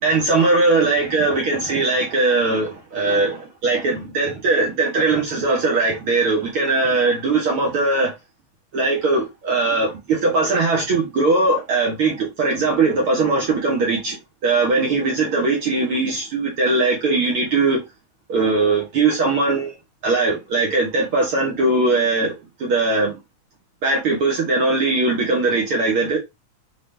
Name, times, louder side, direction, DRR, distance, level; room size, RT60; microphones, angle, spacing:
voice 1, 0.0-8.1 8.7-14.2 14.4-17.8 18.3-19.8 20.0-23.2 23.8-26.2, right 3 dB, 60° right, 1.4 m, -20 dB
5.7 x 2.5 x 3.2 m
omnidirectional pair, 3.8 m